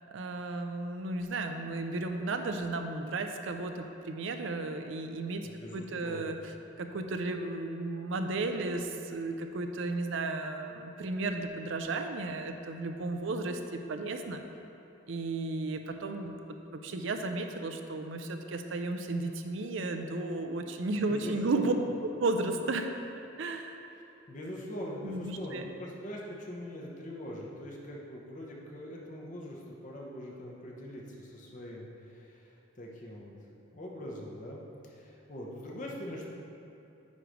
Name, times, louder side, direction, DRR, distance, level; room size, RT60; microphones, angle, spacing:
voice 1, 0.1-6.5 6.8-14.4 15.1-16.4 16.8-21.7 22.2-22.9 23.4-23.9 25.0-25.7, right 2 dB, 70° right, 6 dB, 0.5 m, -34 dB
voice 2, 5.4-6.4 21.1-21.7 24.3-33.3 33.7-36.3, left 1 dB, 40° left, -2 dB, 0.9 m, -42 dB
9.4 x 3.2 x 5.1 m, 2.9 s
head